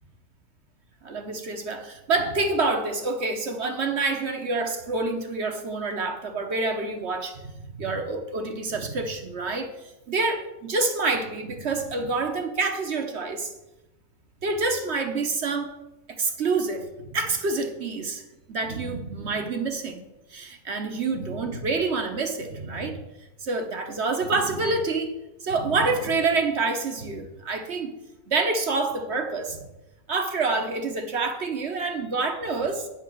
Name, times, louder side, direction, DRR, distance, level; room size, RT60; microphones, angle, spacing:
voice 1, 1.0-13.5 14.4-15.7 16.1-18.2 18.5-20.0 20.3-23.0 23.4-25.1 25.4-27.9 28.3-29.6 30.1-32.9, right 3 dB, 55° right, 1.2 m, -27 dB
9.5 x 5.8 x 6.2 m
omnidirectional pair, 1.5 m